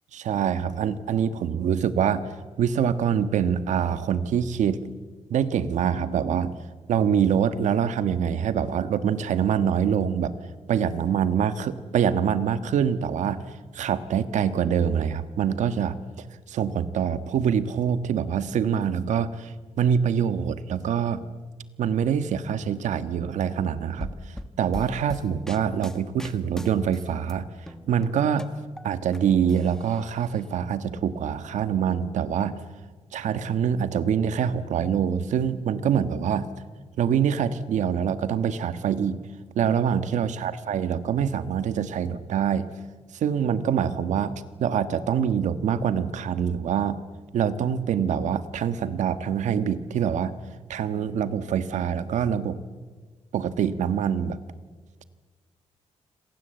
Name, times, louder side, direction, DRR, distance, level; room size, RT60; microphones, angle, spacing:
voice 1, 0.1-2.3 2.6-4.9 5.3-6.6 6.9-10.3 10.7-21.3 21.8-27.5 27.9-28.5 28.8-32.6 33.1-36.5 37.0-39.2 39.5-42.7 43.1-47.0 47.3-50.3 50.7-52.6 53.3-54.4, right 8 dB, 85° right, 11 dB, 1.5 m, -25 dB
sound 1, 24.0-27.3 27.7-29.2 29.5-30.4, left 1 dB, 5° left, 1.3 m, -39 dB
28.0 x 26.5 x 8.0 m, 1.4 s
wide cardioid pair, 155°, 12 cm